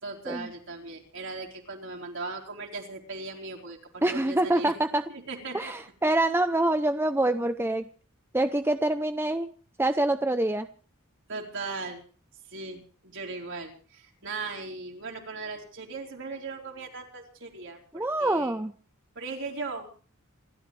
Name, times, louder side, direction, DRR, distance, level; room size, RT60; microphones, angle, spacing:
voice 1, 0.0-4.7 5.1-5.7 11.3-12.0 12.5-18.5 19.2-19.9, right 3 dB, 55° right, 1 dB, 4.3 m, -38 dB
voice 2, 4.0-5.0 5.5-7.9 8.3-9.5 9.8-10.7 17.9-18.7, right 1 dB, 10° right, 8 dB, 0.6 m, -25 dB
27.5 x 13.5 x 3.3 m, 0.40 s
head